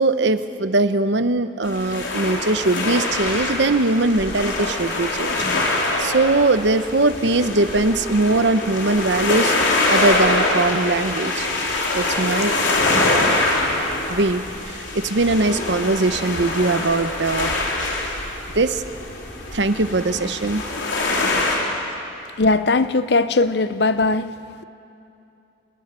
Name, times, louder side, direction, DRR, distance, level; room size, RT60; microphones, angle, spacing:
voice 1, 0.0-5.4 5.7-9.5 9.9-11.5 11.9-12.5 13.0-13.4 14.1-17.5 18.5-18.8 19.5-20.6, right 2 dB, 70° right, 11 dB, 0.9 m, -21 dB
sound 1, 1.6-21.6, left 2 dB, 85° left, 3.7 m, -24 dB
voice 2, 22.4-24.3, left 3 dB, 60° left, 13 dB, 0.7 m, -19 dB
28.5 x 11.0 x 9.8 m, 2.7 s
head